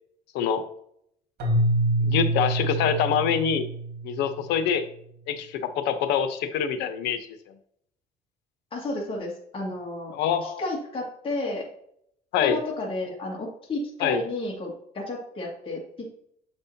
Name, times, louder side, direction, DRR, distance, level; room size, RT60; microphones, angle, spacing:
Keyboard (musical), 1.4-4.5, right 1 dB, 70° right, 1.7 m, -26 dB
voice 1, 2.0-3.6 4.0-4.9 5.3-7.3 10.1-10.6 12.3-12.6 14.0-14.2, left 8 dB, 90° left, 9 dB, 0.8 m, -25 dB
voice 2, 8.7-10.1 10.4-11.7 12.4-16.1, left 2 dB, 30° left, -3 dB, 2.0 m, -32 dB
7.7 x 5.4 x 2.8 m, 0.70 s
cardioid pair, 110°, 17 cm